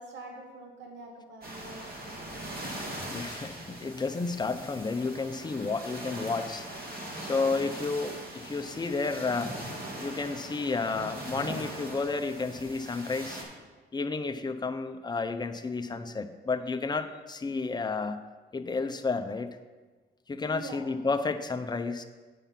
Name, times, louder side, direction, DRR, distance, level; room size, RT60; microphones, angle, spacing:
voice 1, 0.0-1.8 20.4-20.9, right 2 dB, 65° right, 0 dB, 1.7 m, -44 dB
sound 1, 1.4-13.4, right 1 dB, 50° right, 2.3 m, -41 dB
voice 2, 3.1-6.6 7.2-9.5 10.0-13.4 13.9-18.2 18.5-19.5 20.3-22.0, left 4 dB, 20° left, 7 dB, 0.7 m, -31 dB
8.5 x 5.4 x 5.8 m, 1.3 s
cardioid pair, 90°, 20 cm